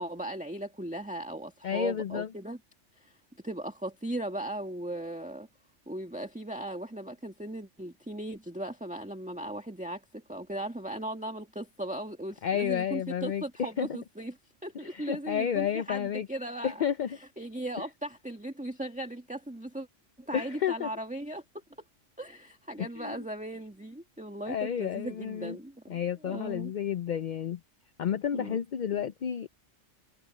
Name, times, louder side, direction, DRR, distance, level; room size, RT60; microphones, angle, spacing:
voice 1, 0.0-2.6 3.0-3.1 3.4-5.5 5.9-16.8 17.1-19.9 20.2-21.4 22.2-26.7 28.3-28.6 28.9-29.1, right 1 dB, 5° right, 1.8 m, -38 dB
voice 2, 1.6-2.3 12.4-13.9 14.8-16.3 16.6-17.1 20.3-20.9 22.8-23.2 24.5-25.6 25.9-27.6 28.0-29.5, left 9 dB, 55° left, 0.5 m, -31 dB
omnidirectional pair, 1.2 m